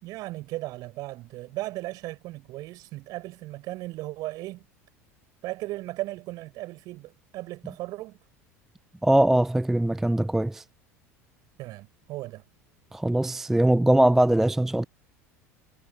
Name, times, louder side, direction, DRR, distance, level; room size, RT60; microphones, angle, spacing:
voice 1, 0.0-4.7 5.4-8.2 11.6-12.4, right 18 dB, 50° right, 4.3 m, -36 dB
voice 2, 9.0-10.6 12.9-14.8, right 1 dB, 5° right, 0.3 m, -21 dB
figure-of-eight pair, 75°, 8 cm